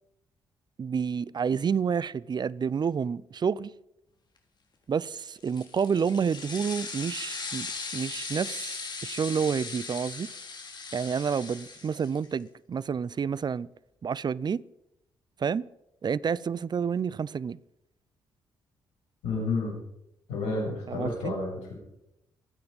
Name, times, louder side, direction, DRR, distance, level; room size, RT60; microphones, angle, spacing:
voice 1, 0.8-3.7 4.9-7.7 7.9-10.3 10.9-13.7 14.0-14.6 15.4-15.7 16.0-17.6 20.9-21.3, right 6 dB, 45° right, 0.6 m, -29 dB
sound 1, 5.4-12.3, left 4 dB, 45° left, 3.6 m, -38 dB
voice 2, 19.2-19.7 20.3-21.7, left 3 dB, 80° left, 7.9 m, -30 dB
26.0 x 9.4 x 5.4 m
hypercardioid pair, 45°, 10 cm